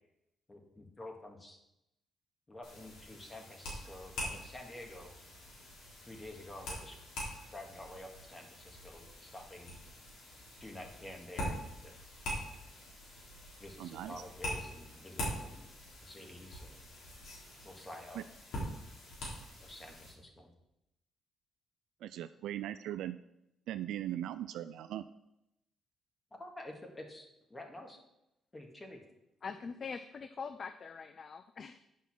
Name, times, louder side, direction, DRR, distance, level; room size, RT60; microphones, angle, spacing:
voice 1, 0.5-1.6 2.5-5.2 6.1-6.9 7.5-9.8 10.6-12.0 13.6-15.7 16.0-16.8 17.6-18.2 19.6-20.5 26.3-28.0 28.5-29.0 29.4-29.5, left 1 dB, 20° left, 2 dB, 1.9 m, -49 dB
sound 1, 2.6-20.1, equal, 85° left, 3.5 m, -44 dB
voice 2, 13.8-14.2 18.2-18.3 22.0-23.2 23.7-25.0, right 12 dB, 85° right, 11 dB, 0.3 m, -39 dB
voice 3, 29.4-31.8, left 5 dB, 45° left, 10 dB, 0.4 m, -43 dB
8.4 x 5.6 x 6.1 m, 0.84 s
cardioid pair, 90°, 0 cm